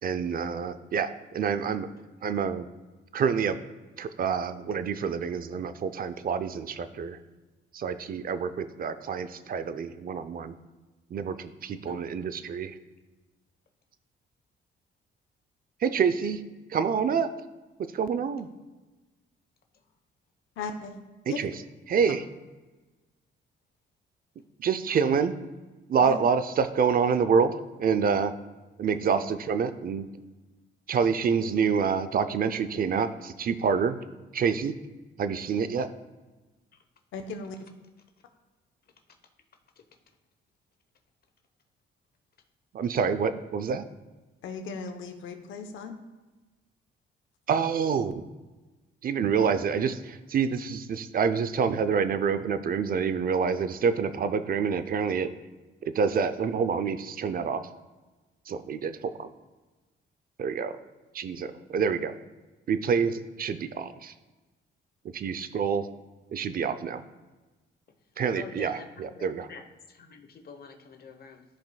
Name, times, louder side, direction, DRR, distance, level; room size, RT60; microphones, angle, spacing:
voice 1, 0.0-1.9 2.2-2.7 3.1-3.6 4.0-7.2 7.7-10.6 11.1-12.8 15.8-16.4 16.7-17.3 17.9-18.5 21.3-21.5 21.9-22.2 24.6-25.4 25.9-28.3 28.8-30.1 30.9-34.0 34.3-34.7 35.2-35.9 42.7-43.8 47.5-48.2 49.0-55.3 55.9-57.6 58.5-59.3 60.4-60.7 61.1-62.2 62.7-64.1 65.1-65.9 66.3-67.0 68.2-69.5, right 6 dB, 45° right, 12 dB, 0.6 m, -27 dB
voice 2, 11.9-12.2 19.7-19.8 39.1-39.2 39.8-39.9 68.3-71.4, left 5 dB, 50° left, 5 dB, 1.0 m, -47 dB
voice 3, 20.6-21.4 26.0-26.2 29.1-29.2 37.1-37.7 44.4-46.0, left 4 dB, 80° left, 5 dB, 1.0 m, -37 dB
14.0 x 5.1 x 2.3 m, 1.2 s
cardioid pair, 90°, 20 cm